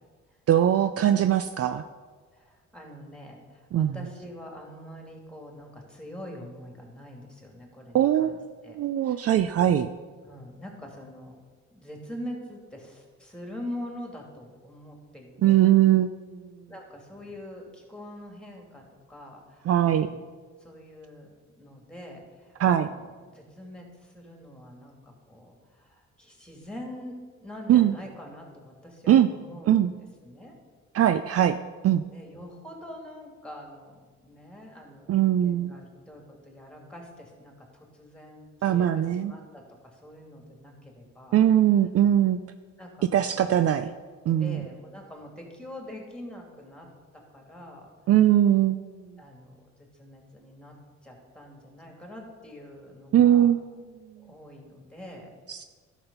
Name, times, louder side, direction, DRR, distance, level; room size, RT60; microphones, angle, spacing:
voice 1, 0.5-1.8 3.7-3.9 7.9-8.3 8.7-9.9 15.4-16.4 19.7-20.1 22.6-22.9 27.7-27.9 29.1-29.3 29.7-29.9 30.9-31.6 31.8-32.0 35.1-35.7 38.6-39.3 41.3-42.4 43.1-43.9 44.3-44.6 48.1-48.8 53.1-53.6 55.5-55.6, right 11 dB, 50° right, 10 dB, 0.5 m, -21 dB
voice 2, 2.3-8.8 9.0-9.4 10.2-11.4 11.7-15.7 16.7-20.2 20.6-23.0 23.3-29.9 30.2-30.5 32.1-41.4 42.8-43.6 44.4-46.9 47.1-47.9 49.2-50.8 51.0-53.5 54.2-55.3, left 1 dB, 5° left, 1 dB, 2.6 m, -44 dB
11.5 x 6.2 x 5.5 m, 1.5 s
cardioid pair, 90°, 30 cm